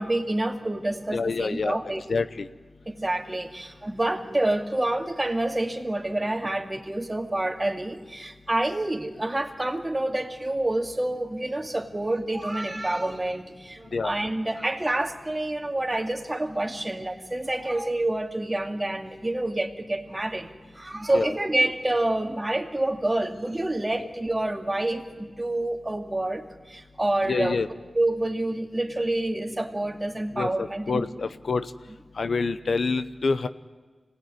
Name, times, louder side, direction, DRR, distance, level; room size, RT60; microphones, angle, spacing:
voice 1, 0.0-2.0 2.9-20.5 20.7-27.6 27.9-31.0, right 1 dB, 25° right, 5 dB, 2.2 m, -28 dB
voice 2, 1.1-1.8 2.1-2.5 13.9-14.1 21.1-21.3 27.2-27.7 30.3-31.6 32.2-33.5, left 4 dB, 75° left, 12 dB, 0.8 m, -27 dB
25.0 x 18.5 x 9.7 m, 1.4 s
cardioid pair, 50°, 0 cm